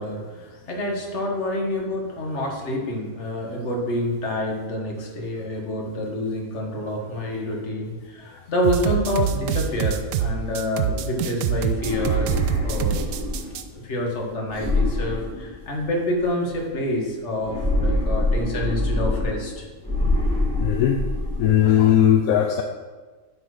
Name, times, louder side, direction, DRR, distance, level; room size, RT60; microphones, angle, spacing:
voice 1, 0.0-12.3 12.6-13.0 13.7-19.7, left 1 dB, 55° left, 0 dB, 1.7 m, -27 dB
sound 1, 8.6-13.6, right 8 dB, 85° right, 1.1 m, -25 dB
sound 2, 11.7-13.6 14.5-16.0 17.4-19.5 19.8-21.5, left 1 dB, 5° left, 1.2 m, -25 dB
voice 2, 20.6-21.0 21.4-22.6, left 10 dB, 80° left, 3 dB, 1.0 m, -18 dB
10.5 x 4.2 x 4.8 m, 1.3 s
omnidirectional pair, 1.5 m